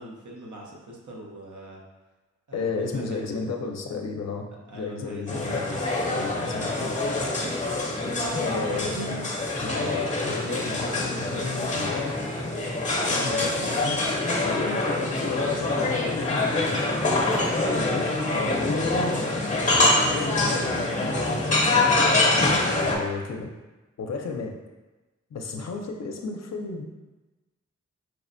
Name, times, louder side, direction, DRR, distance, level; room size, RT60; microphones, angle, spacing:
voice 1, 0.0-1.8 2.5-3.3 4.7-5.6 7.8-8.9, right 1 dB, 85° right, -3 dB, 0.7 m, -42 dB
voice 2, 2.5-7.0 8.4-9.2 9.6-12.3 13.1-14.0 14.4-16.8 17.7-19.2 19.7-20.7 21.4-21.8 22.8-23.5 24.0-24.5 25.3-26.8, left 4 dB, 60° left, 3 dB, 0.5 m, -33 dB
sound 1, 5.3-23.0, left 2 dB, 25° left, 0.7 m, -25 dB
sound 2, 7.0-7.1 7.4-14.7 16.2-22.1, right 4 dB, 40° right, 0.5 m, -43 dB
4.6 x 2.1 x 2.5 m, 1.1 s
wide cardioid pair, 65°, 29 cm